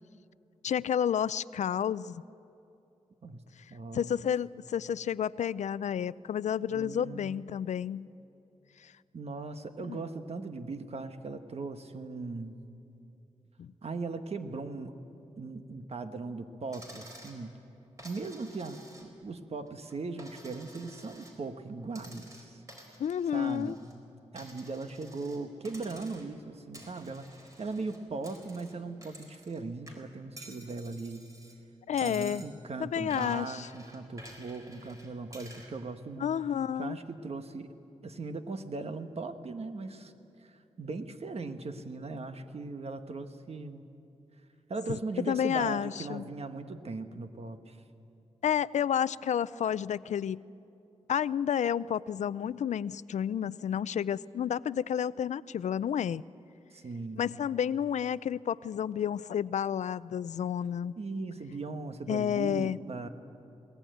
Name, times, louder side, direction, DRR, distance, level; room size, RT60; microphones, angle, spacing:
voice 1, 0.6-2.2 3.9-8.1 8.8-8.9 9.8-10.0 13.6-13.7 23.0-23.8 31.9-32.4 32.8-33.7 36.2-37.0 45.3-46.2 48.4-50.4 51.1-56.2 57.2-60.9 62.1-62.8, left 9 dB, 85° left, 19 dB, 0.4 m, -30 dB
voice 2, 3.7-4.2 6.7-7.5 9.1-12.6 13.8-15.0 15.4-17.5 18.0-18.8 19.2-22.6 23.3-23.8 24.3-31.2 32.0-36.3 36.8-37.7 38.0-40.1 40.4-43.8 44.7-47.8 56.7-57.3 61.0-63.1, right 3 dB, 60° right, 8 dB, 1.4 m, -39 dB
Coin (dropping), 16.7-17.4 18.0-19.3 19.7-21.4 21.9-23.9 24.4-25.4 25.6-26.4 26.7-29.6 29.9-31.6 32.0-32.5 33.1-35.7, right 1 dB, 30° right, 4.4 m, -51 dB
21.5 x 18.0 x 9.2 m, 2.8 s
cardioid pair, 75°, 12 cm